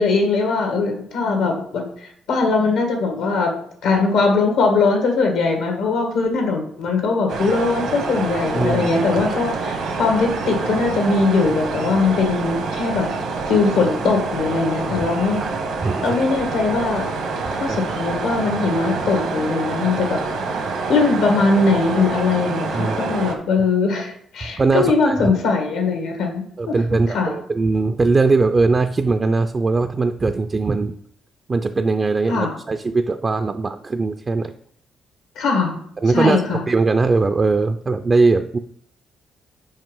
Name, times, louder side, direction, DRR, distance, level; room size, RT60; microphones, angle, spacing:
voice 1, 0.0-3.6 3.8-13.1 13.5-15.4 16.0-17.1 17.6-20.2 20.9-27.3 32.3-32.5 35.4-35.8 36.1-36.6, left 4 dB, 90° left, 3 dB, 2.0 m, -20 dB
sound 1, 7.3-23.4, right 4 dB, 85° right, 1.4 m, -26 dB
voice 2, 8.5-8.9 14.8-15.1 15.4-15.5 15.8-16.0 17.7-17.8 22.7-23.0 24.6-25.3 26.6-30.9 31.5-34.5 36.0-36.4 36.7-38.6, right 3 dB, 30° right, 8 dB, 0.4 m, -20 dB
5.6 x 5.1 x 5.4 m, 0.65 s
cardioid pair, 90°, 0 cm